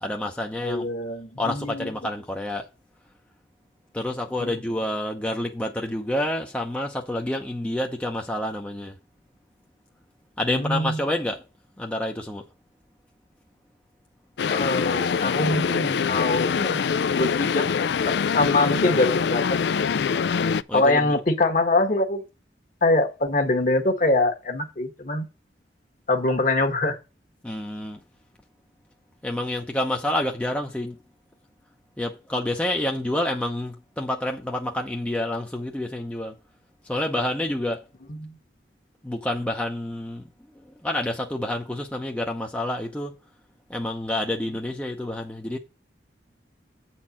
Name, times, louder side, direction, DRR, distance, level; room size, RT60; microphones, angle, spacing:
voice 1, 0.0-0.9 1.4-2.7 3.9-9.0 10.4-11.4 11.8-12.4 20.7-21.2 27.4-28.0 29.2-31.0 32.0-36.4 36.8-37.8 39.0-40.3 40.6-43.2 43.7-45.6, left 1 dB, 10° left, 0.7 m, -28 dB
voice 2, 0.6-1.9 4.4-4.5 10.5-11.0 14.5-19.6 20.7-22.2 22.8-25.3 26.1-27.0 38.1-38.4, left 2 dB, 45° left, 1.4 m, -24 dB
sound 1, 14.4-20.6, left 6 dB, 70° left, 0.4 m, -24 dB
8.6 x 4.4 x 7.2 m
head